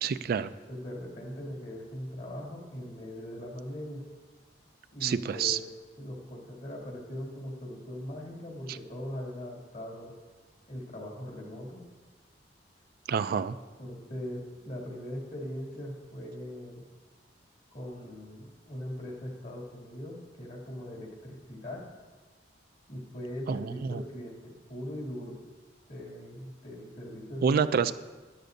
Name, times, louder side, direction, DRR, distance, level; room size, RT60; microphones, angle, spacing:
voice 1, 0.0-0.5 5.0-5.6 13.1-13.6 23.5-24.0 27.4-27.9, right 6 dB, 55° right, 12 dB, 0.3 m, -27 dB
voice 2, 0.7-4.0 4.9-5.7 6.0-10.1 10.7-11.8 13.8-16.8 17.7-21.8 22.9-25.4 25.9-27.6, left 1 dB, 50° left, -2 dB, 2.5 m, -40 dB
13.0 x 11.0 x 2.7 m, 1.3 s
head